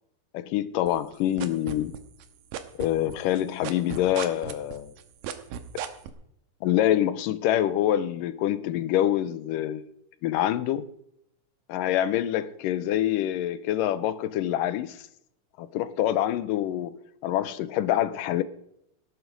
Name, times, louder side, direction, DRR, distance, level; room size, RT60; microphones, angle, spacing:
voice 1, 0.3-2.0 2.8-4.9 6.6-9.8 10.2-10.9 11.7-15.1 15.6-17.0 17.2-18.4, left 12 dB, 80° left, 2.3 m, -26 dB
sound 1, 0.9-2.2 2.5-6.1, right 10 dB, 85° right, 2.8 m, -35 dB
18.0 x 9.1 x 5.2 m
omnidirectional pair, 4.0 m